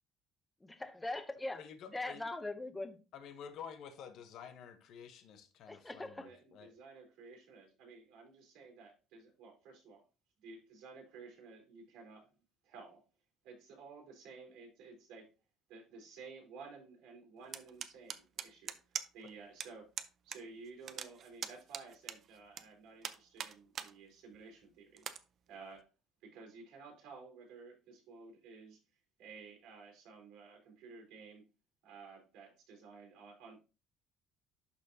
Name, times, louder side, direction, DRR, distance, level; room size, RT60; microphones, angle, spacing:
voice 1, 0.8-1.6 1.9-3.0 5.7-6.3, left 2 dB, 10° left, 0.7 m, -40 dB
voice 2, 1.5-2.3 3.1-6.7, left 7 dB, 50° left, 1.0 m, -50 dB
voice 3, 6.2-10.0 10.4-12.3 12.6-13.0 13.4-15.3 15.7-18.7 19.1-19.9 20.2-25.0 25.5-25.9 26.2-28.8 29.2-31.4 31.8-33.6, right 4 dB, 75° right, 3.7 m, -54 dB
sound 1, 17.5-19.3 19.6-19.7 20.0-20.4 20.7-22.6 23.0-23.9 24.3-24.4 25.0-25.2, right 8 dB, 35° right, 0.5 m, -42 dB
11.5 x 4.2 x 2.7 m
cardioid pair, 170°, 0 cm